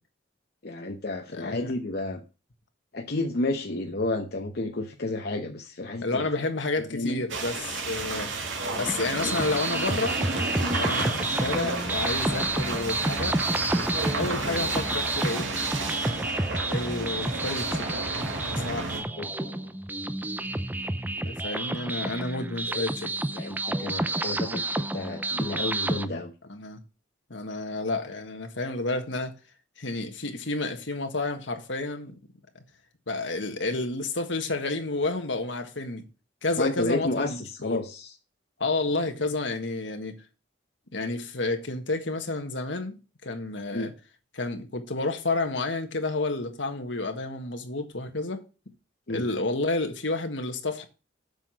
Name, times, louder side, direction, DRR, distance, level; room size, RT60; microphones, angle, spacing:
voice 1, 0.6-2.2 2.9-6.3 6.9-7.2 10.9-11.1 19.2-19.8 22.7-22.8 23.3-26.3 36.6-38.1 43.7-43.9 49.1-49.3, left 2 dB, 55° left, 0.9 m, -31 dB
voice 2, 1.3-1.7 6.0-8.3 8.7-10.2 10.7-13.4 14.1-15.5 16.7-17.9 18.6-18.9 21.2-23.1 23.8-23.9 26.5-26.8 27.3-29.3 29.8-32.1 33.1-36.0 36.4-37.8 38.6-40.2 40.9-43.9 44.3-48.4 49.1-50.9, left 2 dB, 75° left, 1.6 m, -30 dB
sound 1, 7.3-19.0, right 3 dB, 85° right, 2.4 m, -31 dB
sound 2, 8.9-26.1, right 2 dB, 10° right, 0.4 m, -30 dB
8.0 x 6.0 x 6.2 m
head